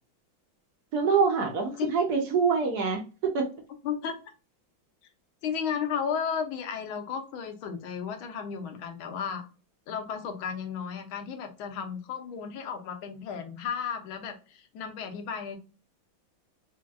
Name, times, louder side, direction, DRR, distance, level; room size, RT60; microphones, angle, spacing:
voice 1, 0.9-3.0 3.3-3.5, right 5 dB, 65° right, 3 dB, 1.1 m, -25 dB
voice 2, 3.8-4.1 5.4-9.4 9.9-15.6, left 7 dB, 90° left, 5 dB, 1.6 m, -34 dB
5.0 x 2.7 x 2.2 m, 0.35 s
omnidirectional pair, 2.2 m